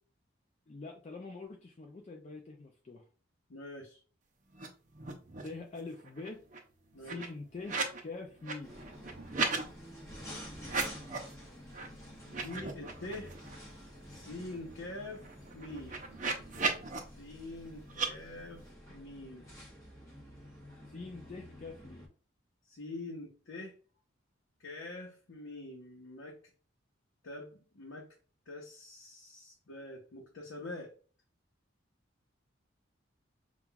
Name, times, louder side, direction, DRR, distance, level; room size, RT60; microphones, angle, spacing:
voice 1, 0.7-3.0 5.4-6.4 7.0-7.8 8.0-8.8 20.9-22.1, left 3 dB, 35° left, 2 dB, 0.4 m, -44 dB
voice 2, 3.5-4.0 6.9-7.2 12.4-13.3 14.1-15.2 15.5-16.0 17.2-18.6 18.9-19.5 22.7-23.7 24.6-26.4 27.2-28.1 28.5-30.9, left 2 dB, 80° left, -1 dB, 0.8 m, -45 dB
sound 1, 4.5-4.7 4.9-5.6 5.9-8.0 8.3-9.6 10.6-11.3 11.7-11.9 12.2-13.6 14.0-14.1 14.3-17.0 17.9-18.1, right 4 dB, 40° right, 0.6 m, -37 dB
sound 2, 8.6-22.1, equal, 15° left, 1.0 m, -50 dB
5.5 x 2.3 x 2.3 m, 0.38 s
head